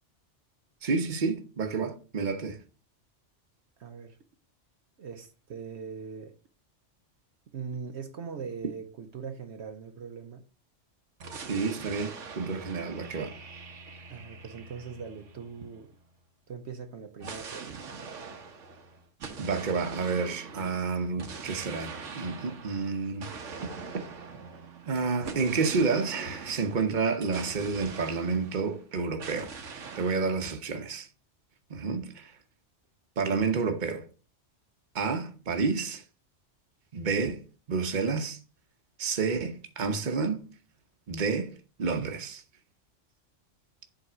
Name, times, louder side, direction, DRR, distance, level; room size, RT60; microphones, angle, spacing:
voice 1, 0.8-2.6 11.5-13.3 19.4-23.3 24.9-29.5 30.0-31.1 31.7-32.3 33.2-34.1 34.9-36.0 36.9-38.4 39.0-40.4 41.1-42.4, right 4 dB, 40° right, 1.1 m, -30 dB
voice 2, 3.8-4.2 5.0-6.3 7.5-10.4 14.1-15.9 16.5-17.9, right 6 dB, 65° right, 1.1 m, -41 dB
sound 1, 11.2-15.9 17.2-28.8 29.2-30.3, right 5 dB, 85° right, 1.5 m, -43 dB
7.7 x 3.9 x 6.1 m
omnidirectional pair, 1.2 m